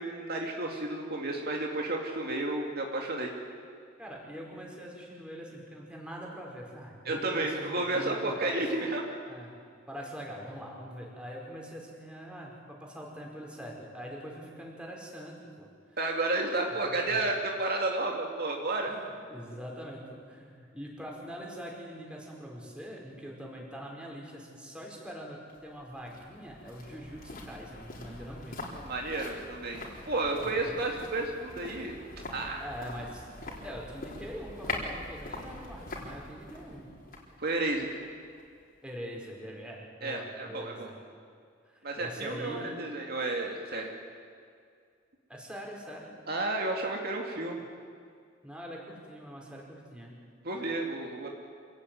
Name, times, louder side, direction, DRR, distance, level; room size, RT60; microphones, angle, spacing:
voice 1, 0.0-3.3 7.1-9.0 16.0-18.9 28.9-32.0 32.3-32.7 37.4-37.9 40.0-40.9 41.8-43.9 46.3-47.6 50.4-51.3, right 2 dB, 55° right, 1 dB, 2.4 m, -32 dB
voice 2, 4.0-8.7 9.3-9.5 9.9-15.7 16.9-17.2 18.9-19.0 19.3-28.6 30.4-30.8 32.6-33.3 33.6-36.9 38.8-41.0 41.6-42.8 45.3-46.1 48.4-50.1, equal, 5° right, -2 dB, 5.1 m, -43 dB
sound 1, 25.5-38.7 38.9-39.0, left 2 dB, 50° left, 4.2 m, -43 dB
26.5 x 17.0 x 9.3 m, 2.2 s
head